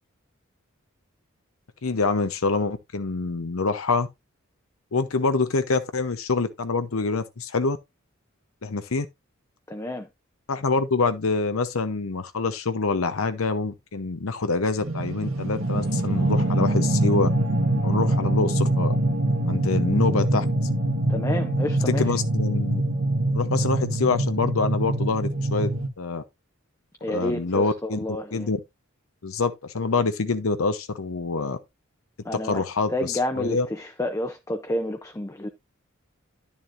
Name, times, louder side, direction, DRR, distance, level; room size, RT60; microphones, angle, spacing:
voice 1, 1.8-4.1 4.9-7.8 8.6-9.1 10.5-17.3 17.8-18.9 19.5-20.4 21.9-22.8 23.3-25.7 26.0-26.2 27.1-28.0 28.3-28.6 29.2-31.6 32.3-33.7, left 4 dB, 85° left, 0.8 m, -26 dB
voice 2, 9.7-10.1 21.1-22.0 27.0-28.5 32.2-35.5, left 1 dB, 15° left, 0.6 m, -30 dB
sound 1, 14.8-25.9, right 1 dB, 75° right, 1.3 m, -24 dB
10.5 x 7.2 x 2.5 m
head